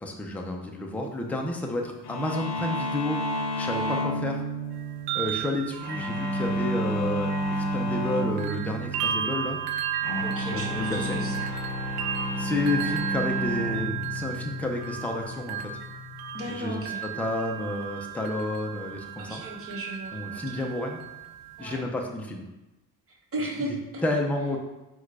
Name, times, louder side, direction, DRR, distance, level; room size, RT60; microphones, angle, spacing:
voice 1, 0.0-3.2 3.6-4.4 5.1-9.6 10.4-11.2 12.4-15.7 16.5-19.4 20.1-21.0 21.6-22.4 23.6-23.7 24.0-24.6, left 1 dB, 5° left, 1 dB, 0.5 m, -31 dB
sound 1, 2.1-16.5, equal, 85° left, 0.7 m, -31 dB
sound 2, 4.8-8.1 8.4-21.7, right 9 dB, 75° right, 0.6 m, -35 dB
voice 2, 10.2-11.4 16.3-17.0 19.2-20.6 21.6-21.8 23.3-24.0, right 1 dB, 35° right, -3 dB, 1.2 m, -35 dB
4.5 x 2.4 x 4.6 m, 1.0 s
cardioid pair, 110°, 39 cm